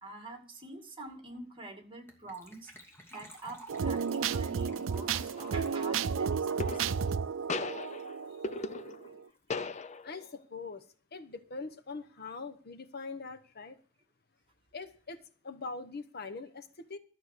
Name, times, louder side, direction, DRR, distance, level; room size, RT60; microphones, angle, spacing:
voice 1, 0.0-2.7 3.1-6.9 8.1-8.3 9.0-9.1 9.7-9.8, right 2 dB, 25° right, 4 dB, 2.3 m, -46 dB
Gurgling / Trickle dribble / Fill (with liquid), 2.1-8.3 8.6-8.7 8.8-9.1 9.4-9.5, right 1 dB, 10° left, 2.5 m, -54 dB
sound 1, 3.7-9.2, right 6 dB, 75° right, 0.4 m, -33 dB
sound 2, 5.3-5.7 6.6-7.2 7.5-9.2 9.5-10.3, left 3 dB, 35° left, 0.5 m, -38 dB
voice 2, 10.0-10.8 11.1-13.8 14.7-17.0, left 4 dB, 55° left, 9 dB, 1.0 m, -42 dB
13.0 x 6.5 x 6.6 m, 0.43 s
head